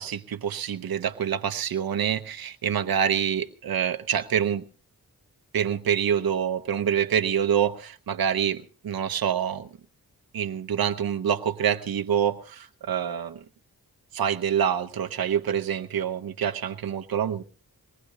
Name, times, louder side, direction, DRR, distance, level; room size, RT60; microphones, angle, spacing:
voice 1, 0.0-4.6 5.5-9.7 10.3-13.4 14.1-17.4, right 8 dB, 75° right, 0.8 m, -26 dB
22.0 x 19.0 x 2.7 m
cardioid pair, 70°, 36 cm